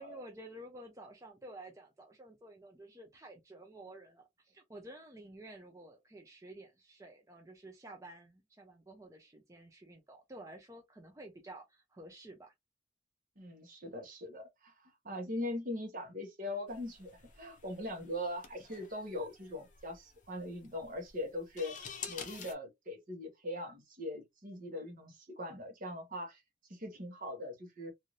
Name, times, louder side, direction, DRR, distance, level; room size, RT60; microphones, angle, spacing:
voice 1, 0.0-12.5, right 1 dB, 15° right, 0.5 m, -51 dB
voice 2, 13.4-21.8 22.1-26.4 26.7-27.9, left 1 dB, 50° right, 1.1 m, -41 dB
sound 1, 16.7-22.5, left 6 dB, 45° left, 0.7 m, -49 dB
2.7 x 2.6 x 3.0 m
head